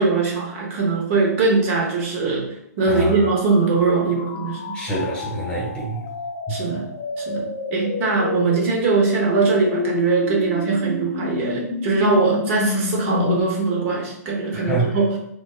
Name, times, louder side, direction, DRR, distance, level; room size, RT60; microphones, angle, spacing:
voice 1, 0.0-2.5 2.8-4.8 6.5-6.9 7.2-15.2, right 4 dB, 50° right, 0 dB, 0.9 m, -21 dB
sound 1, 3.1-13.4, left 4 dB, 50° left, 0.7 m, -29 dB
voice 2, 4.7-6.0 6.5-6.6 14.5-14.9, right 2 dB, 10° left, -4 dB, 1.0 m, -25 dB
3.2 x 2.2 x 3.2 m, 0.77 s
hypercardioid pair, 130°, 9 cm